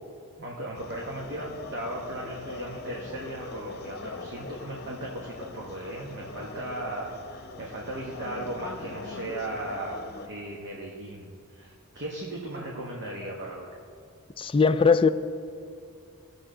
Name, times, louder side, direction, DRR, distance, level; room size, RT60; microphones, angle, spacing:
voice 1, 0.4-13.8, right 1 dB, 50° right, -3 dB, 1.1 m, -37 dB
sound 1, 0.7-10.3, left 3 dB, 45° left, 0.8 m, -42 dB
voice 2, 14.4-15.1, left 5 dB, 25° left, 10 dB, 0.3 m, -20 dB
19.0 x 6.9 x 3.8 m, 2.4 s
head